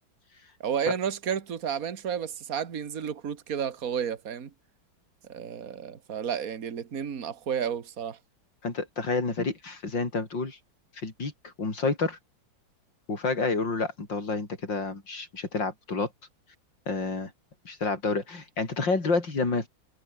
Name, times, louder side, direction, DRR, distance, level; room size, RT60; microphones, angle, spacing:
voice 1, 0.6-4.5 5.3-8.2, right 8 dB, 45° right, 2.1 m, -31 dB
voice 2, 8.6-10.6 11.0-12.2 13.1-16.1 16.9-17.3 17.6-19.7, left 3 dB, 65° left, 5.1 m, -29 dB
omnidirectional pair, 2.1 m